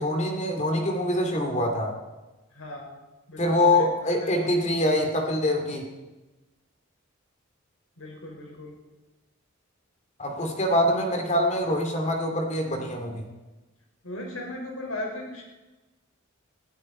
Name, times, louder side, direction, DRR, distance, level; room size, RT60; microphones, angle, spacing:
voice 1, 0.0-1.9 3.4-5.9 10.2-13.2, left 1 dB, 35° left, 4 dB, 2.4 m, -24 dB
voice 2, 2.5-2.9 3.3-4.6 8.0-8.7 14.0-15.4, left 1 dB, 90° left, 0 dB, 5.4 m, -37 dB
21.0 x 14.0 x 4.4 m, 1.1 s
head